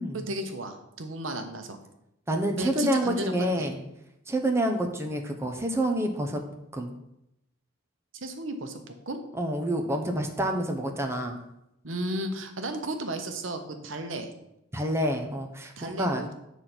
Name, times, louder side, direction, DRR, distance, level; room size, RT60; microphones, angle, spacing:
voice 1, 0.1-1.8 2.6-3.7 8.2-8.8 9.1-9.2 11.8-14.3 15.8-16.3, right 1 dB, 90° right, 6 dB, 1.0 m, -34 dB
voice 2, 2.3-3.8 4.3-6.4 6.7-6.9 9.3-11.4 14.7-16.2, right 1 dB, 15° right, 3 dB, 0.8 m, -28 dB
8.4 x 4.1 x 6.1 m, 0.84 s
head